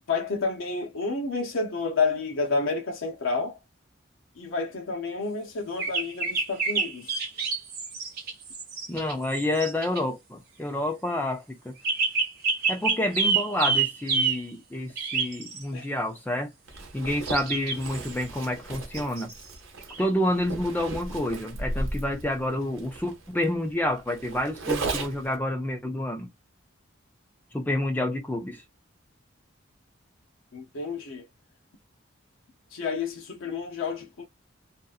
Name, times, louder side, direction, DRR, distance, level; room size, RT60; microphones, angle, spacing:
voice 1, 0.1-3.6 4.4-7.3 15.7-15.9 30.5-31.3 32.7-34.2, left 4 dB, 70° left, 0.6 m, -30 dB
sound 1, 5.8-10.0 11.8-14.4 15.0-15.6 17.3-18.1 18.9-19.3 19.8-20.0, right 4 dB, 45° right, 0.9 m, -27 dB
voice 2, 8.9-11.7 12.7-16.5 16.9-19.3 20.0-26.3 27.5-28.6, left 1 dB, 10° left, 0.4 m, -29 dB
Zipper (clothing), 16.7-25.4, right 3 dB, 75° right, 0.9 m, -36 dB
2.6 x 2.4 x 2.3 m
head